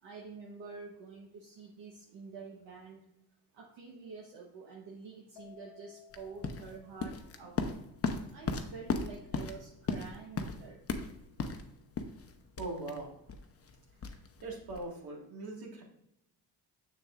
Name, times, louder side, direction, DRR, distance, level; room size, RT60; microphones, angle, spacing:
voice 1, 0.0-3.0 3.5-7.6 8.3-10.8, right 4 dB, 70° right, -2 dB, 1.2 m, -48 dB
Keyboard (musical), 5.3-7.8, left 14 dB, 65° left, 0.8 m, -59 dB
sound 1, 6.1-14.9, left 4 dB, 30° left, 0.7 m, -37 dB
voice 2, 12.6-13.1 14.1-15.8, right 2 dB, 55° right, 0 dB, 1.8 m, -41 dB
6.5 x 6.3 x 2.5 m, 0.82 s
supercardioid pair, 65°, 44 cm